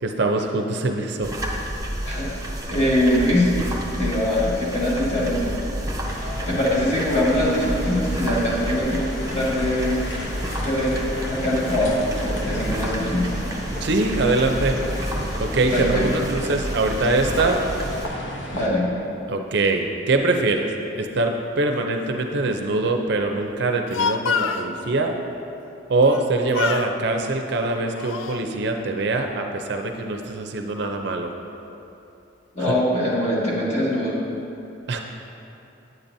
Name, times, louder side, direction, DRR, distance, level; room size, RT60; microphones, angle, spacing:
voice 1, 0.0-1.3 13.8-14.8 15.4-17.6 19.3-20.7 21.0-25.1 25.9-31.3 32.6-32.7 34.9-35.0, right 2 dB, 55° right, 4 dB, 0.5 m, -23 dB
sound 1, 1.2-18.1, right 1 dB, 15° right, 0.7 m, -30 dB
voice 2, 2.7-3.5 4.0-5.6 6.5-10.0 10.6-13.3 15.7-16.2 18.5-18.9 32.5-34.2, left 1 dB, 35° left, -7 dB, 1.8 m, -22 dB
sound 2, 6.1-18.7, left 1 dB, 65° left, 0.9 m, -34 dB
Speech, 23.7-24.7 26.0-26.3 26.5-26.9 27.6-28.5, left 6 dB, 80° left, 0.3 m, -26 dB
9.2 x 8.6 x 2.7 m, 2.8 s
head